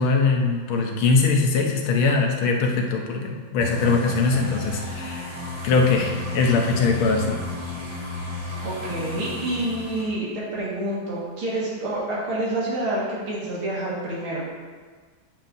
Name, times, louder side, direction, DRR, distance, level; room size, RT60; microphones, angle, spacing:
voice 1, 0.0-5.3 5.6-7.4, left 4 dB, 80° left, 2 dB, 1.7 m, -21 dB
sound 1, 3.6-10.1, left 2 dB, 15° right, 1.4 m, -33 dB
voice 2, 8.6-14.4, right 1 dB, 80° right, -6 dB, 2.6 m, -28 dB
8.5 x 7.3 x 2.6 m, 1.5 s
omnidirectional pair, 2.3 m